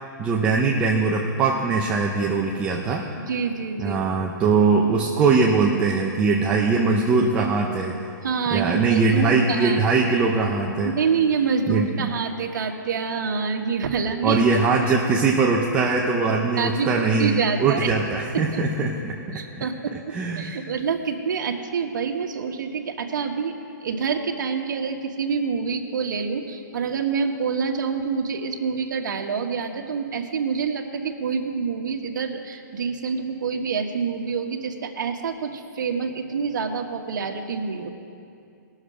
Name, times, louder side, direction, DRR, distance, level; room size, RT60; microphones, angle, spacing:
voice 1, 0.2-3.0 3.8-8.1 8.5-10.9 11.7-12.1 14.2-19.7 19.9-20.5, right 4 dB, 10° right, -1 dB, 0.5 m, -21 dB
voice 2, 3.2-4.0 8.2-9.8 10.1-10.2 10.8-14.4 16.6-17.9 18.5-18.6 19.3-23.5 23.8-37.9, right 5 dB, 65° right, 3 dB, 1.3 m, -27 dB
19.5 x 6.6 x 4.9 m, 2.5 s
hypercardioid pair, 165°, 11 cm